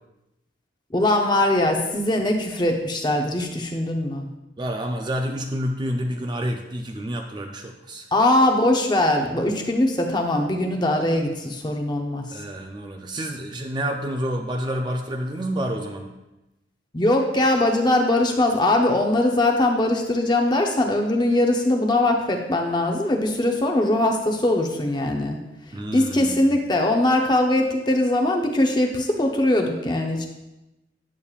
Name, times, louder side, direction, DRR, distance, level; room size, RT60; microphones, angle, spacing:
voice 1, 0.9-4.3 8.1-12.2 16.9-25.4 25.9-30.3, left 1 dB, 25° left, 2 dB, 0.7 m, -21 dB
voice 2, 4.6-8.1 12.3-16.2 25.7-26.4, equal, 25° right, 3 dB, 0.4 m, -29 dB
8.3 x 7.1 x 2.4 m, 0.97 s
head